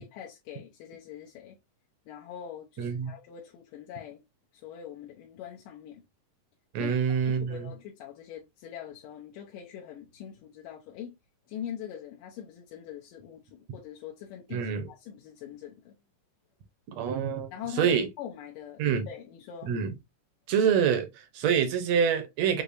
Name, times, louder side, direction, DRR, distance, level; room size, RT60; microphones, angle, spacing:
voice 1, 0.0-1.6 2.1-4.2 4.5-6.0 6.8-7.0 7.2-11.2 11.5-14.7 15.0-15.9 17.5-19.7, left 9 dB, 80° left, 2.5 m, -43 dB
voice 2, 2.8-3.1 6.7-7.7 14.5-14.8 17.0-17.5 17.8-18.1 18.8-19.1 19.6-19.9 20.5-22.6, right 7 dB, 65° right, 1.8 m, -26 dB
6.6 x 2.9 x 2.7 m
omnidirectional pair, 3.9 m